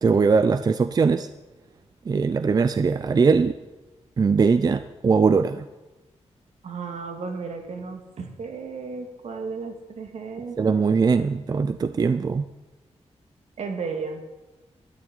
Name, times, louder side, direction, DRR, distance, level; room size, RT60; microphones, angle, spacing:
voice 1, 0.0-1.3 2.1-3.6 4.2-5.7 10.6-12.4, right 5 dB, 35° right, 11 dB, 0.5 m, -21 dB
voice 2, 6.6-10.6 13.6-14.2, right 4 dB, 75° right, 4 dB, 2.3 m, -34 dB
12.5 x 10.0 x 9.7 m, 1.1 s
wide cardioid pair, 175°, 12 cm